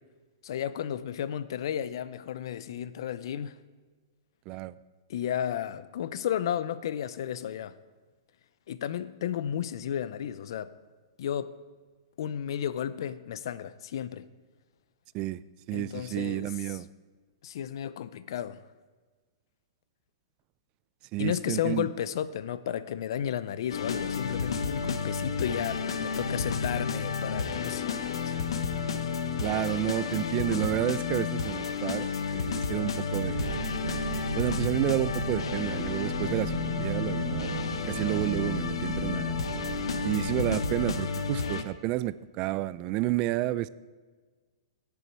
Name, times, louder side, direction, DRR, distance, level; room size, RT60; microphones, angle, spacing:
voice 1, 0.4-3.6 5.1-7.7 8.7-10.7 11.2-11.5 12.2-14.2 15.7-16.8 17.4-18.6 21.2-28.3 40.4-40.6, left 10 dB, 65° left, 0.6 m, -33 dB
voice 2, 15.7-16.9 21.1-21.9 29.4-33.6 34.3-37.5 37.9-39.4 40.0-43.7, right 16 dB, 35° right, 0.4 m, -30 dB
sound 1, 23.7-41.6, left 6 dB, 90° left, 1.0 m, -31 dB
sound 2, 33.1-41.0, right 8 dB, 70° right, 0.7 m, -36 dB
17.5 x 7.0 x 4.6 m
hypercardioid pair, 145°, 3 cm